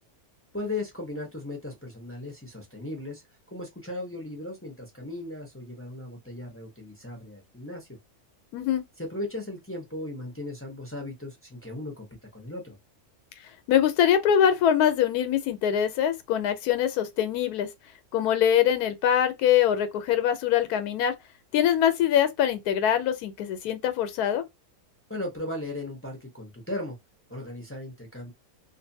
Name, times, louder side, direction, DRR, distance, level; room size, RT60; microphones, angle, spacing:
voice 1, 0.5-3.2 3.5-8.0 9.0-12.1 12.3-12.8 25.1-27.0 27.3-28.3, left 2 dB, 15° left, 0.5 m, -37 dB
voice 2, 8.5-8.8 13.7-17.7 18.1-21.1 21.5-24.4, left 9 dB, 90° left, 1.1 m, -23 dB
2.6 x 2.5 x 2.6 m
omnidirectional pair, 1.6 m